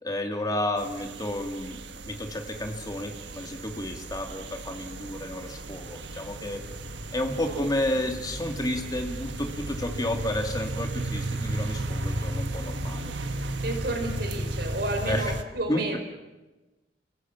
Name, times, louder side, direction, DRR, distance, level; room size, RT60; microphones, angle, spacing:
voice 1, 0.0-1.8 2.1-6.7 7.1-13.1 15.1-15.3 15.7-16.0, left 1 dB, 20° left, 4 dB, 2.3 m, -31 dB
sound 1, 0.8-15.4, right 1 dB, 85° right, 1.5 m, -34 dB
voice 2, 13.6-16.0, right 2 dB, 60° right, 3 dB, 4.5 m, -31 dB
29.5 x 16.5 x 7.3 m, 1.1 s
head